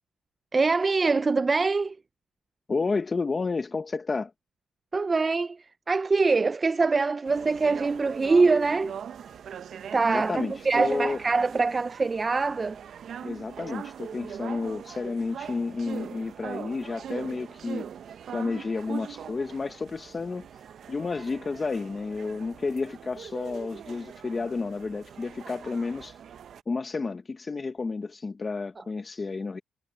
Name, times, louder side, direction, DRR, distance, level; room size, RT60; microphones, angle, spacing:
voice 1, 0.5-2.0 4.9-9.0 9.9-12.8, right 4 dB, 30° right, 0.5 m, -24 dB
voice 2, 2.7-4.3 10.1-11.2 13.2-17.9 18.3-20.5 20.9-26.2 26.7-29.6, left 4 dB, 30° left, 1.1 m, -31 dB
sound 1, 7.2-26.6, right 8 dB, 60° right, 0.8 m, -41 dB
cardioid pair, 90°, 0 cm